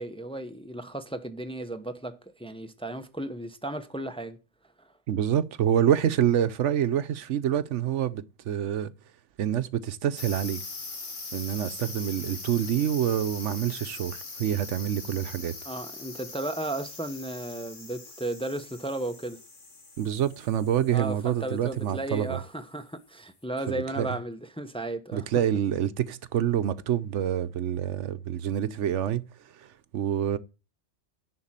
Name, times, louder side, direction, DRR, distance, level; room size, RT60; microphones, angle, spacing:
voice 1, 0.0-4.4 4.8-4.9 15.6-19.4 20.9-25.3, right 1 dB, 5° left, 0.8 m, -34 dB
voice 2, 5.1-8.9 9.4-10.6 11.3-15.5 20.0-22.4 23.7-24.2 25.1-29.3 29.6-30.4, right 10 dB, 75° right, 1.0 m, -27 dB
sound 1, 10.2-22.5, left 3 dB, 85° left, 2.4 m, -42 dB
10.5 x 4.3 x 7.3 m
omnidirectional pair, 1.2 m